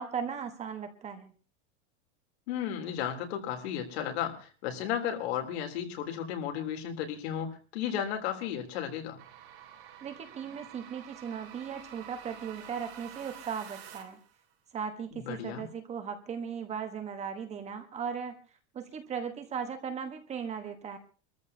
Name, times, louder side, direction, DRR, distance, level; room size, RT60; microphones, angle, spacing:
voice 1, 0.0-1.3 10.0-14.2 14.7-18.3 18.7-21.0, right 7 dB, 20° right, 7 dB, 1.3 m, -37 dB
voice 2, 2.5-7.5 7.7-9.2 15.1-15.6, left 9 dB, 65° left, 4 dB, 3.4 m, -34 dB
sound 1, 9.2-14.3, right 10 dB, 55° right, 5.2 m, -49 dB
25.5 x 14.0 x 2.8 m, 0.35 s
supercardioid pair, 160°, 34 cm